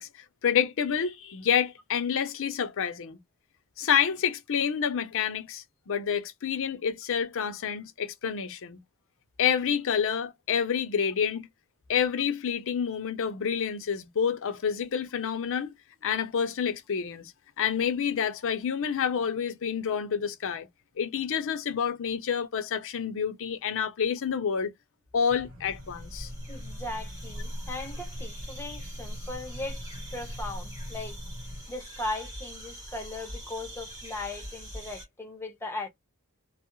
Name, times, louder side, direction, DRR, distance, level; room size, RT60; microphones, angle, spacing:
voice 1, 0.0-3.2 3.8-8.8 9.4-11.5 11.9-15.7 16.0-17.3 17.6-20.7 21.0-24.7 25.1-26.3, left 7 dB, 60° left, 0.5 m, -28 dB
sound 1, 25.3-31.6, left 1 dB, 75° right, 0.9 m, -45 dB
sound 2, 25.7-35.0, equal, 15° right, 0.9 m, -41 dB
voice 2, 26.5-29.8 30.1-31.2 31.7-35.9, left 2 dB, 10° left, 0.6 m, -38 dB
2.3 x 2.0 x 2.9 m
head